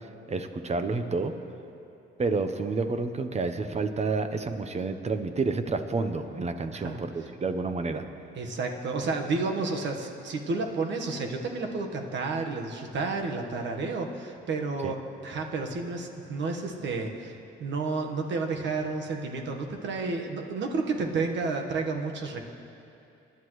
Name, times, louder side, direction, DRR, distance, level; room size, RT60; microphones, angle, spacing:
voice 1, 0.3-1.3 2.2-8.0 14.8-14.9, right 3 dB, 35° right, 8 dB, 0.9 m, -29 dB
voice 2, 8.3-17.3 17.6-22.5, right 3 dB, 65° right, 2 dB, 1.4 m, -31 dB
23.5 x 10.5 x 3.2 m, 2.7 s
cardioid pair, 90°, 20 cm